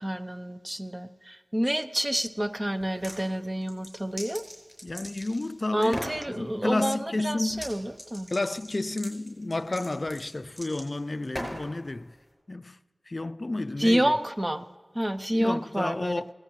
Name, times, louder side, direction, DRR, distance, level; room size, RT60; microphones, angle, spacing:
voice 1, 0.0-4.4 5.7-8.3 13.8-14.7 14.9-16.3, right 1 dB, 25° right, 0.7 m, -28 dB
sound 1, 2.8-3.2 3.6-5.5 5.8-6.2 7.5-7.7 8.0-11.7, equal, ahead, 5.2 m, -39 dB
voice 2, 4.8-7.7 8.3-12.1 12.5-12.8 13.1-14.1 15.3-16.3, left 2 dB, 50° left, 0.4 m, -31 dB
18.5 x 16.5 x 3.1 m
wide cardioid pair, 50°, 0 cm